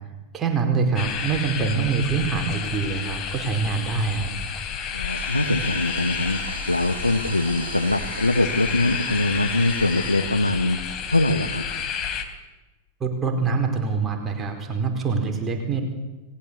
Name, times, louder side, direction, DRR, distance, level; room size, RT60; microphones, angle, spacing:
voice 1, 0.3-4.3 13.0-15.8, right 5 dB, 20° right, 3 dB, 4.6 m, -25 dB
sound 1, 1.0-12.3, left 7 dB, 30° left, 3.5 m, -31 dB
voice 2, 4.9-11.6, left 2 dB, 85° left, 6 dB, 1.4 m, -23 dB
Domestic sounds home sounds, 4.9-10.8, right 6 dB, 65° right, 2.4 m, -40 dB
29.5 x 20.0 x 8.3 m, 1.1 s
figure-of-eight pair, 90°, 0 cm